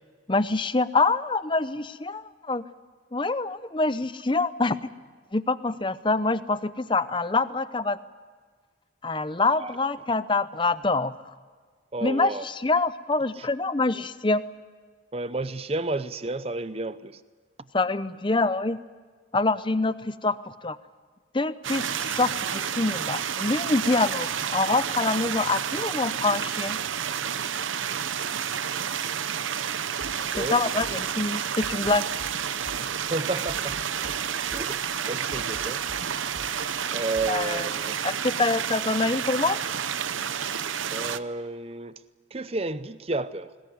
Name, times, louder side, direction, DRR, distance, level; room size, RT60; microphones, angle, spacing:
voice 1, 0.3-2.6 3.1-4.8 5.3-8.0 9.0-11.2 12.0-14.4 17.7-18.8 19.3-20.8 21.3-26.8 30.4-32.0 37.3-37.7 38.0-39.6, left 3 dB, 25° left, 0.7 m, -25 dB
voice 2, 11.9-12.5 13.4-13.5 15.1-17.2 30.3-30.6 32.8-34.2 34.5-35.8 36.9-38.0 40.9-42.0 42.3-43.5, right 2 dB, 30° right, 0.6 m, -32 dB
sound 1, 21.6-41.2, right 8 dB, 85° right, 0.8 m, -30 dB
sound 2, 30.0-30.5 30.8-31.0 31.6-32.4 32.7-32.9 33.5-34.2 34.5-34.7 35.3-36.0 36.3-36.6 37.2-37.3, left 1 dB, 65° left, 3.8 m, -44 dB
22.0 x 20.0 x 9.5 m
head